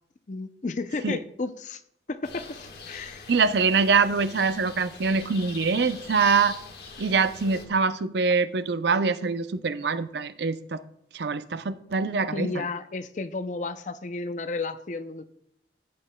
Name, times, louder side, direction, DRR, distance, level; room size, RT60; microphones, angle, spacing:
voice 1, 0.3-1.8 2.1-3.3 12.3-15.2, left 3 dB, 45° left, 0.5 m, -33 dB
sound 1, 2.2-7.6, left 5 dB, 60° left, 1.3 m, -42 dB
voice 2, 3.3-6.6 7.0-10.8 11.1-12.5, right 5 dB, 70° right, 0.5 m, -24 dB
14.0 x 8.3 x 2.2 m
head